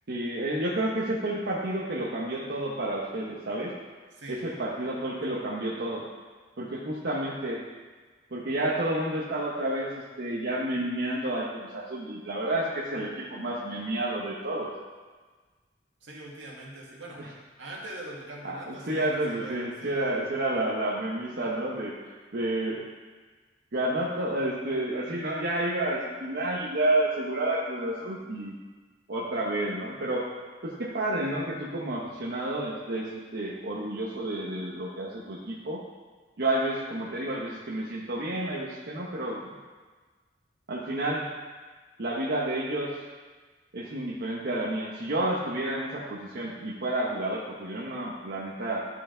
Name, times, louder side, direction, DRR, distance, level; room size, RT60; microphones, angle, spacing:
voice 1, 0.1-3.7 4.3-6.0 6.6-7.6 8.3-14.7 17.2-17.3 18.4-22.0 22.3-22.8 23.7-28.5 29.1-30.3 30.6-35.8 36.4-39.4 40.7-41.3 42.0-42.9 43.7-48.8, right 1 dB, 60° right, -5 dB, 1.0 m, -30 dB
voice 2, 4.1-4.4 16.0-17.2 17.6-20.3, right 1 dB, 80° right, -3 dB, 1.8 m, -42 dB
12.0 x 4.9 x 3.8 m, 1.4 s
head